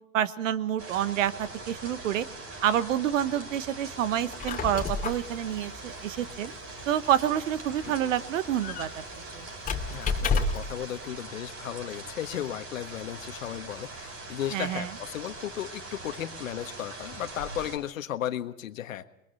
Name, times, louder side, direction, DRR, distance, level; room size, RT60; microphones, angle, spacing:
voice 1, 0.1-2.2 2.6-6.5 6.9-8.9 9.4-9.5 14.5-14.9, right 10 dB, 65° right, 15 dB, 1.4 m, -28 dB
sound 1, 0.8-17.8, right 2 dB, 30° right, 6.6 m, -42 dB
Squeak, 4.2-10.8, left 4 dB, 20° left, 2.4 m, -32 dB
voice 2, 9.9-19.0, left 11 dB, 65° left, 10 dB, 1.6 m, -35 dB
29.0 x 22.0 x 4.2 m, 0.84 s
hypercardioid pair, 100°, 42 cm